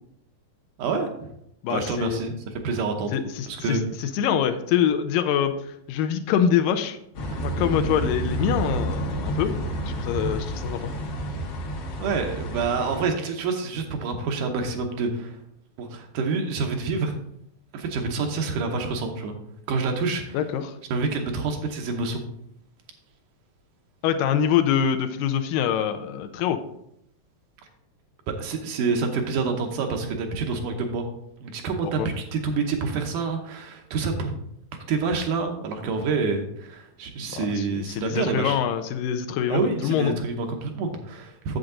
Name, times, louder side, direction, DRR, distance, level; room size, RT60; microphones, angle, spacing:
voice 1, 0.8-1.3 1.7-3.8 12.0-15.4 15.8-17.2 17.7-19.4 19.7-20.4 20.9-22.2 28.3-31.0 31.4-34.3 34.9-38.6 39.5-41.6, right 4 dB, 70° right, 4 dB, 2.3 m, -27 dB
voice 2, 1.6-2.2 3.1-7.0 7.4-9.5 9.9-10.9 20.3-20.8 24.0-26.6 31.8-32.1 37.3-40.2, left 9 dB, 80° left, 8 dB, 2.2 m, -25 dB
sound 1, 7.1-13.0, right 1 dB, 60° left, 1.6 m, -29 dB
8.0 x 7.5 x 3.8 m, 0.77 s
omnidirectional pair, 4.0 m